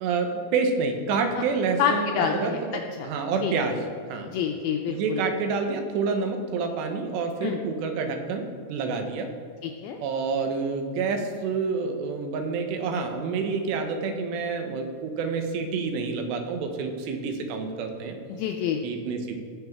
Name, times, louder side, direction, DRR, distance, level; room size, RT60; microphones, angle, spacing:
voice 1, 0.0-3.8 4.1-4.3 4.9-8.4 8.7-9.3 10.0-18.2 18.8-19.4, right 4 dB, 80° right, 5 dB, 3.1 m, -28 dB
voice 2, 1.8-3.1 3.4-3.5 4.3-5.2 7.4-7.6 9.6-10.0 18.3-18.8, left 8 dB, 85° left, 3 dB, 2.2 m, -28 dB
16.5 x 6.8 x 3.6 m, 2.1 s
omnidirectional pair, 4.9 m